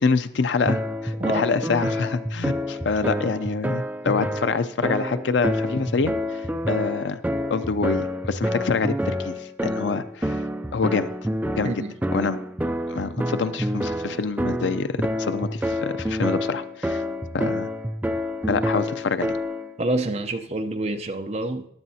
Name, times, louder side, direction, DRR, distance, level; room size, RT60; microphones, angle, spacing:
voice 1, 0.0-6.4 6.7-7.2 7.5-10.4 10.7-11.1 11.6-11.7 12.1-12.4 12.9-17.0 17.3-17.7 18.5-19.4, left 4 dB, 80° left, 12 dB, 0.5 m, -26 dB
sound 1, 0.7-19.7, equal, 10° right, 0.3 m, -28 dB
voice 2, 1.2-1.5 11.6-12.0 19.8-21.7, right 2 dB, 35° right, 6 dB, 0.7 m, -27 dB
15.0 x 10.5 x 2.8 m, 0.72 s
head